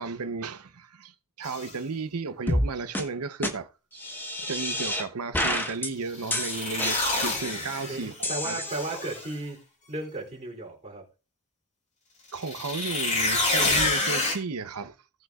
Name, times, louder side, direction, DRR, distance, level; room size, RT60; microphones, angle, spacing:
voice 1, 0.0-4.0 4.4-8.6 12.3-14.9, right 4 dB, 85° right, 0.8 m, -34 dB
sound 1, 1.4-1.7 6.1-8.2 8.7-9.3 12.3-14.4, left 2 dB, 35° left, 2.5 m, -28 dB
sound 2, 2.5-2.7 2.9-3.0 3.4-3.5 4.0-5.0 5.3-5.9 6.3-7.7 8.2-9.2, left 1 dB, 10° left, 1.2 m, -29 dB
voice 2, 7.8-9.6 9.9-11.0, right 2 dB, 35° right, 3.2 m, -35 dB
17.5 x 6.2 x 2.4 m
head